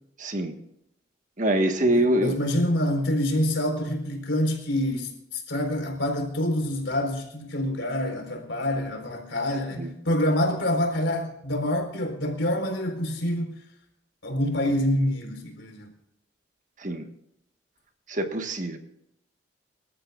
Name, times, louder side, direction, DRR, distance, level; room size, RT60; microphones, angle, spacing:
voice 1, 0.2-0.5 1.4-2.4 9.8-9.9 16.8-17.0 18.1-18.8, right 1 dB, 40° right, 1.5 m, -24 dB
voice 2, 1.9-13.5 14.2-15.9, left 1 dB, 70° left, 4.3 m, -26 dB
26.0 x 13.5 x 2.5 m
head